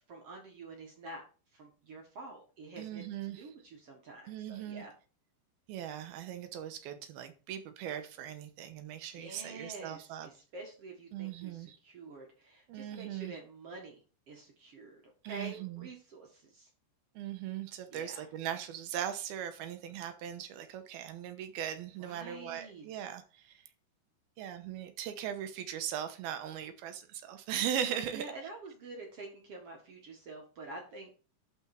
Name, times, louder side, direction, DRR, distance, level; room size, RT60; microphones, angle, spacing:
voice 1, 0.1-1.2 1.5-4.9 9.1-14.0 14.3-16.7 17.9-18.3 22.0-22.9 28.1-31.1, right 3 dB, 50° right, 1.8 m, -48 dB
voice 2, 2.8-3.4 4.3-4.8 5.7-10.3 11.1-11.8 12.7-13.4 15.2-15.9 17.2-23.2 24.4-28.3, right 10 dB, 75° right, 2.7 m, -39 dB
12.0 x 4.4 x 4.5 m
omnidirectional pair, 4.8 m